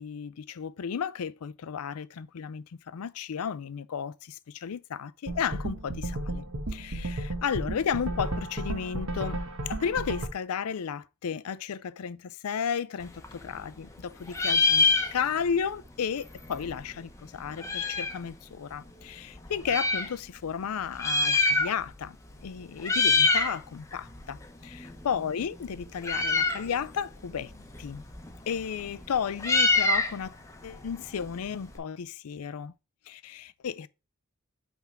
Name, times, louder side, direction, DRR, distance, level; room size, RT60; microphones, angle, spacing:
voice 1, 0.0-6.5 6.7-9.4 9.7-22.2 22.4-27.5 27.8-28.0 28.5-30.4 30.6-32.7 33.1-33.9, left 7 dB, 75° left, 0.4 m, -33 dB
sound 1, 5.3-10.3, right 1 dB, 65° right, 1.2 m, -34 dB
Meow, 13.0-14.0 14.3-15.6 15.9-16.0 16.1-18.2 18.9-20.1 20.8-22.0 22.3-22.5 22.8-23.6 23.9-31.8, left 3 dB, 15° left, 0.8 m, -27 dB
5.7 x 3.5 x 5.7 m
head